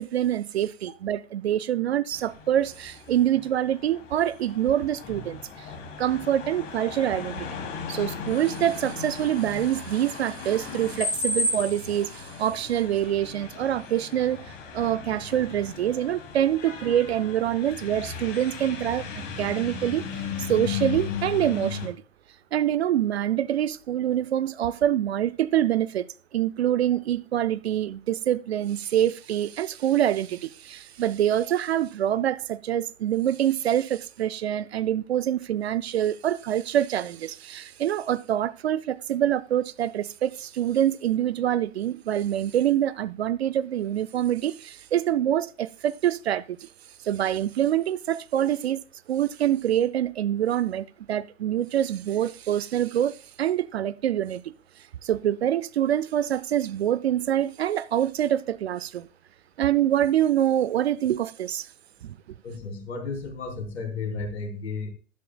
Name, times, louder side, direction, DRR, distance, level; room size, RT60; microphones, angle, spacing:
voice 1, 0.0-5.7 6.0-7.5 7.9-19.1 19.4-20.1 20.4-22.0 22.5-26.1 26.3-46.7 47.0-48.8 49.1-54.5 55.0-59.1 59.6-61.7 62.0-62.1, right 11 dB, 55° right, 0.6 m, -25 dB
sound 1, 2.1-21.9, left 4 dB, 30° left, 2.8 m, -35 dB
voice 2, 62.4-64.9, left 4 dB, 60° left, 2.9 m, -33 dB
12.5 x 11.5 x 2.2 m
figure-of-eight pair, 105°, 38 cm